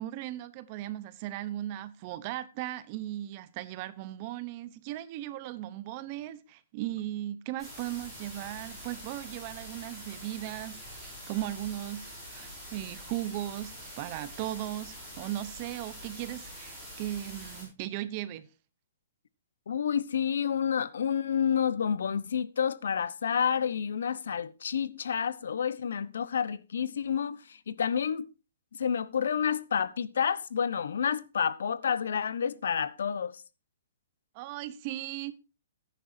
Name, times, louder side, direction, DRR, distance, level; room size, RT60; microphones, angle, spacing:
voice 1, 0.0-18.5 34.3-35.3, right 14 dB, 25° right, 0.8 m, -37 dB
sound 1, 7.6-17.6, equal, 5° left, 6.3 m, -45 dB
voice 2, 19.7-28.3 28.8-33.4, left 7 dB, 70° left, 0.9 m, -29 dB
14.5 x 10.0 x 2.7 m
hypercardioid pair, 175°, 0 cm